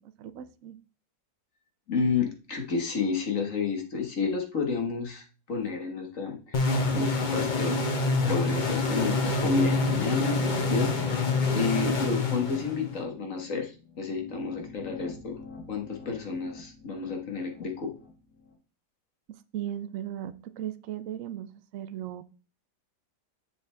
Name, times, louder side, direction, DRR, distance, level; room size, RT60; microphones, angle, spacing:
voice 1, 0.2-0.8 19.3-22.2, right 11 dB, 60° right, 12 dB, 0.9 m, -37 dB
voice 2, 1.9-6.6 6.9-7.8 8.2-11.2 11.5-15.4 15.7-17.9, left 5 dB, 50° left, 3 dB, 1.8 m, -30 dB
sound 1, 6.5-13.0, left 3 dB, 35° left, 0.9 m, -27 dB
sound 2, 9.6-18.5, left 5 dB, 80° left, 2.3 m, -45 dB
7.5 x 6.7 x 3.4 m, 0.35 s
omnidirectional pair, 1.8 m